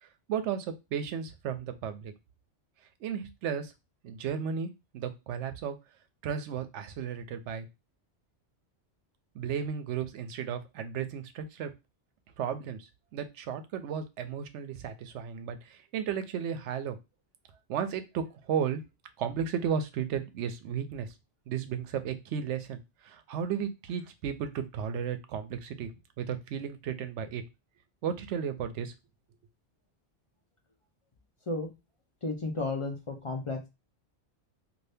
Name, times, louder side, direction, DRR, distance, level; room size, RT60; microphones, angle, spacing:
voice 1, 0.0-2.1 3.0-3.7 4.0-5.8 6.2-7.7 9.3-11.7 12.4-17.0 17.7-18.8 19.2-21.1 21.5-25.9 26.2-27.4 28.0-28.9, right 7 dB, 80° right, 10 dB, 0.9 m, -34 dB
voice 2, 32.2-33.7, left 2 dB, 40° left, 2 dB, 0.5 m, -33 dB
2.7 x 2.5 x 3.3 m, 0.24 s
omnidirectional pair, 1.2 m